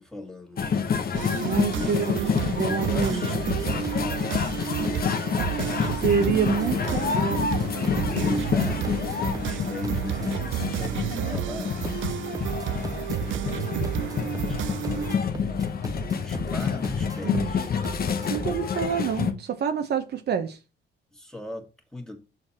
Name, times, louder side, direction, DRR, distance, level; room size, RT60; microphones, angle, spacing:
voice 1, 0.0-4.8 6.6-7.3 8.1-11.8 13.4-15.2 15.8-17.7 21.1-22.2, left 1 dB, 5° left, 1.9 m, -40 dB
sound 1, 0.6-19.3, left 6 dB, 50° left, 1.0 m, -28 dB
sound 2, 1.1-15.2, right 13 dB, 75° right, 0.5 m, -31 dB
voice 2, 1.4-3.3 5.9-7.5 17.2-17.5 18.3-20.6, right 6 dB, 55° right, 0.8 m, -27 dB
sound 3, 2.3-18.6, right 5 dB, 20° right, 0.4 m, -39 dB
6.7 x 5.7 x 4.2 m
cardioid pair, 90°, 20 cm